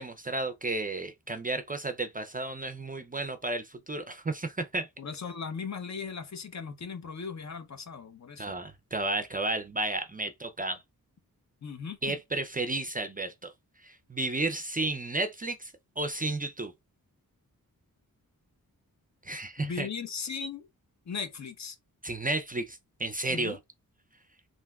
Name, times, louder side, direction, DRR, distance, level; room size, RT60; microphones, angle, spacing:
voice 1, 0.0-4.9 8.4-10.8 12.0-13.5 13.8-16.7 19.2-19.9 22.0-23.6, right 2 dB, 25° right, 0.4 m, -32 dB
voice 2, 5.0-8.5 11.6-12.2 19.6-20.6 21.1-21.8 23.3-23.6, left 5 dB, 50° left, 0.7 m, -38 dB
3.4 x 2.5 x 2.2 m
wide cardioid pair, 70°, 36 cm